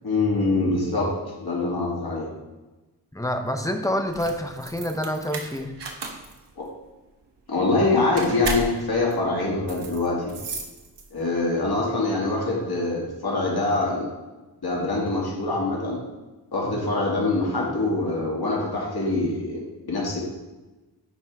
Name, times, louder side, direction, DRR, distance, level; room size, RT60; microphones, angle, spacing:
voice 1, 0.0-1.1 1.4-2.3 6.6-6.7 7.5-10.3 11.1-14.1 14.6-16.0 16.5-20.2, left 2 dB, 60° left, -4 dB, 2.1 m, -24 dB
voice 2, 3.1-5.7 11.8-11.9, equal, 10° left, 5 dB, 0.7 m, -27 dB
sound 1, 4.0-11.4, right 3 dB, 80° right, 1.0 m, -35 dB
10.0 x 3.7 x 4.6 m, 1.1 s
wide cardioid pair, 100°, 41 cm